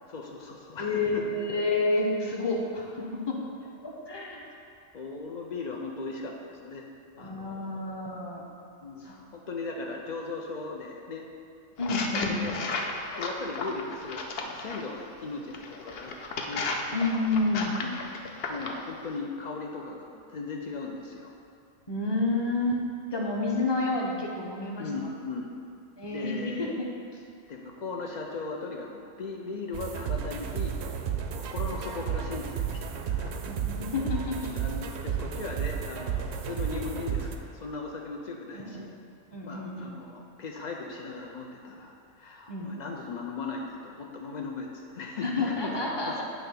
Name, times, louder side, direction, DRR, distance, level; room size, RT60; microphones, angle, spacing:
voice 1, 0.1-1.3 4.9-6.9 7.2-7.7 8.8-11.2 12.3-16.9 17.8-18.2 18.5-21.3 24.8-25.5 26.1-26.7 27.5-33.4 34.5-38.9 39.4-46.2, left 4 dB, 80° left, 0 dB, 0.4 m, -38 dB
voice 2, 0.8-3.4 3.8-4.5 7.2-8.4 9.0-9.2 11.8-12.4 16.9-17.8 21.9-22.8 23.1-24.9 26.0-26.8 33.4-34.5 38.5-39.0 39.3-40.0 42.5-42.7 45.2-46.2, left 2 dB, 25° left, -2 dB, 0.7 m, -29 dB
sound 1, 11.8-14.9 15.5-18.8, left 3 dB, 55° left, 0.7 m, -34 dB
sound 2, 29.7-37.4, right 8 dB, 65° right, 0.7 m, -32 dB
9.0 x 3.4 x 5.6 m, 2.5 s
omnidirectional pair, 1.4 m